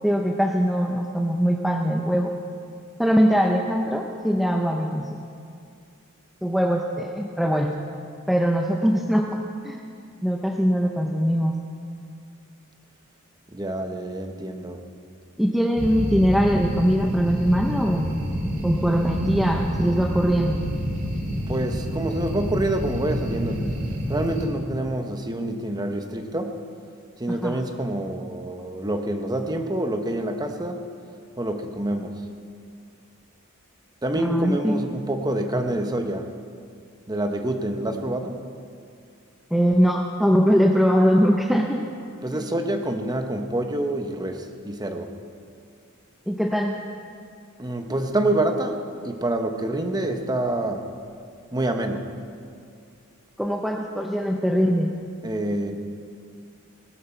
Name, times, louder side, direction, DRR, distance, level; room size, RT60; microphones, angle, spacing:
voice 1, 0.0-2.3 3.0-5.2 6.4-7.8 8.3-9.8 10.2-11.6 15.4-18.2 18.6-20.6 27.3-27.6 34.2-34.9 39.5-41.8 42.3-42.5 46.3-46.8 53.4-54.9, equal, ahead, 1 dB, 0.6 m, -22 dB
voice 2, 13.5-14.8 21.5-23.6 24.1-26.6 27.2-30.9 31.4-32.2 34.0-36.3 37.1-38.4 42.2-45.1 47.6-48.8 49.0-50.9 51.5-52.1 55.2-55.7, right 1 dB, 20° right, 5 dB, 0.9 m, -27 dB
sound 1, 15.8-24.5, equal, 40° right, 2.1 m, -28 dB
19.0 x 12.5 x 4.5 m, 2.3 s
head